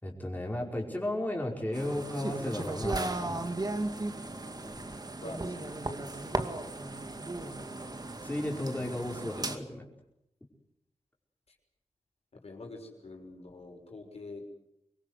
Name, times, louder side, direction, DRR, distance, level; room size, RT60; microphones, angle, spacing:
voice 1, 0.0-3.5 8.2-9.8, left 1 dB, 15° left, 0 dB, 5.0 m, -34 dB
sound 1, 1.7-9.6, right 2 dB, 35° right, 2.2 m, -36 dB
voice 2, 5.2-6.4 12.4-14.5, left 2 dB, 60° left, 2 dB, 6.0 m, -46 dB
25.5 x 22.0 x 8.1 m, 0.82 s
wide cardioid pair, 90°, 12 cm